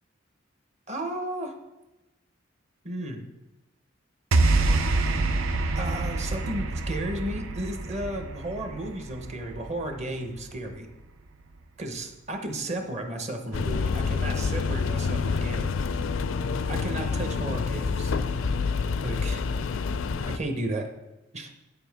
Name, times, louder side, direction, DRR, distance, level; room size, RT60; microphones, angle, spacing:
voice 1, 0.9-1.5 2.8-3.2 5.7-10.9 11.8-15.7 16.7-18.1 19.0-19.4 20.2-20.9 21.3-21.5, right 1 dB, 35° right, 4 dB, 0.9 m, -33 dB
sound 1, 4.3-10.7, right 2 dB, 90° right, 0.6 m, -26 dB
sound 2, 13.5-20.4, left 4 dB, 70° left, 0.4 m, -27 dB
9.0 x 6.8 x 3.5 m, 1.0 s
head